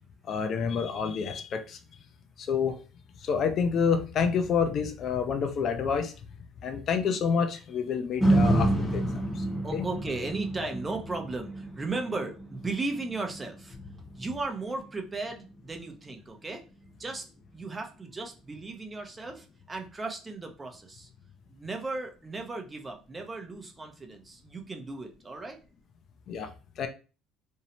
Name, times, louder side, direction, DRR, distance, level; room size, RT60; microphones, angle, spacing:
voice 1, 0.3-1.8 2.4-2.8 3.2-6.1 6.6-9.0 9.3-9.4 9.7-9.9 26.3-26.5 26.8-26.9, left 6 dB, 55° left, 0.4 m, -28 dB
sound 1, 8.2-16.4 16.8-16.9, right 1 dB, 10° left, 0.8 m, -30 dB
voice 2, 9.6-13.8 14.2-16.6 17.0-17.3 17.5-21.1 21.5-25.6, right 3 dB, 25° right, 0.5 m, -36 dB
2.6 x 2.0 x 2.8 m
supercardioid pair, 90°, 0 cm